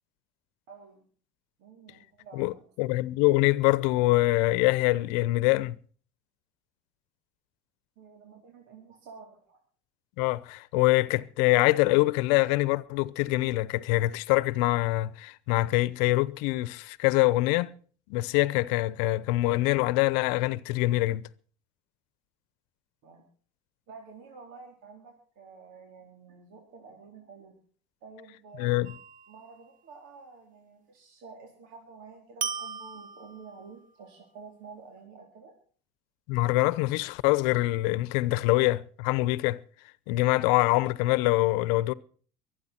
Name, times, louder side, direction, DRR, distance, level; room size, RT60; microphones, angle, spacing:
voice 1, 0.7-1.0 1.6-3.0 8.0-9.6 23.0-23.2 23.9-27.5 28.0-28.9 29.3-35.5, right 5 dB, 70° right, 4.3 m, -50 dB
voice 2, 2.3-5.8 10.2-17.7 18.1-21.3 28.6-28.9 36.3-39.6 40.1-41.9, left 19 dB, 75° left, 0.9 m, -24 dB
sound 1, 28.8-29.5 32.4-33.8, right 6 dB, 40° right, 1.2 m, -37 dB
24.0 x 9.4 x 4.5 m
supercardioid pair, 85°, 21 cm